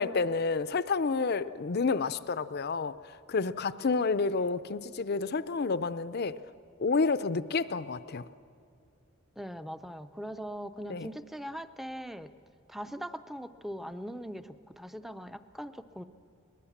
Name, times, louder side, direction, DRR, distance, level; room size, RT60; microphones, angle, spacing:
voice 1, 0.0-2.9 3.3-6.4 6.8-8.2 10.9-11.1, left 4 dB, 45° left, 15 dB, 0.5 m, -29 dB
voice 2, 9.4-12.3 12.7-16.0, equal, ahead, 11 dB, 0.5 m, -41 dB
21.5 x 20.5 x 7.2 m, 2.4 s
head